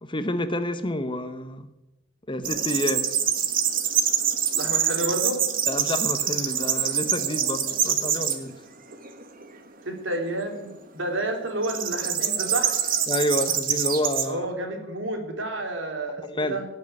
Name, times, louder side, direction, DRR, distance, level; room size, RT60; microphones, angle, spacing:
voice 1, 0.0-1.7 2.3-3.1 5.7-8.6 13.1-14.5 16.2-16.6, left 1 dB, 25° left, 10 dB, 0.9 m, -29 dB
sound 1, 2.4-8.4 8.9-9.4 11.6-14.3, right 8 dB, 45° right, 1.5 m, -25 dB
voice 2, 4.5-5.4 9.8-12.7 14.2-16.7, right 1 dB, 75° right, 3 dB, 3.3 m, -30 dB
17.5 x 6.6 x 9.7 m, 0.98 s
head